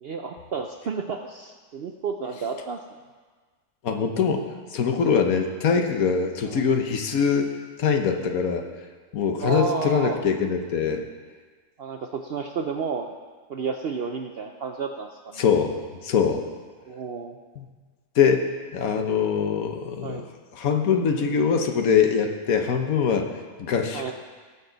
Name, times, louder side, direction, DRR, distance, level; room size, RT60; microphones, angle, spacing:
voice 1, 0.0-2.8 6.4-6.6 9.4-10.2 11.8-13.1 13.5-15.4 16.9-17.4 20.0-20.3 23.9-24.1, right 5 dB, 60° right, 4 dB, 0.6 m, -31 dB
voice 2, 3.8-7.5 7.8-8.7 9.1-11.0 15.4-16.4 17.6-17.7 18.1-20.2 20.5-24.1, left 6 dB, 70° left, 5 dB, 1.3 m, -23 dB
18.5 x 7.1 x 4.0 m, 1.5 s
omnidirectional pair, 1.6 m